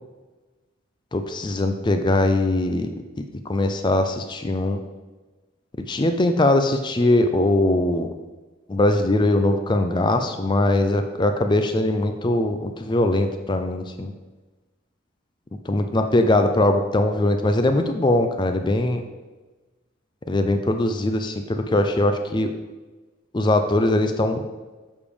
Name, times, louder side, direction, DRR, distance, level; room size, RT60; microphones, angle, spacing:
voice 1, 1.1-2.9 3.5-4.8 5.9-8.1 8.7-14.1 15.7-19.0 20.3-22.5 23.3-24.4, left 1 dB, 20° left, 7 dB, 0.4 m, -21 dB
7.2 x 5.0 x 5.0 m, 1.2 s
head